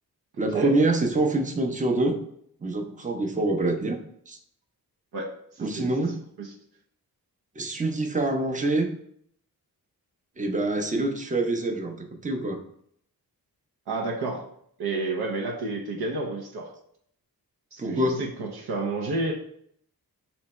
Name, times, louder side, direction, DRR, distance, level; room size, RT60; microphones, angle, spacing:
voice 1, 0.4-2.2 2.6-4.0 4.3-4.4 5.6-6.2 7.6-8.9 10.4-12.6 17.8-18.2, right 2 dB, 20° right, 4 dB, 0.6 m, -25 dB
voice 2, 5.1-5.9 6.4-6.5 13.9-14.4 14.8-16.7 17.7-19.3, right 3 dB, 80° right, -2 dB, 0.7 m, -30 dB
3.3 x 3.0 x 4.1 m, 0.67 s
wide cardioid pair, 105°, 37 cm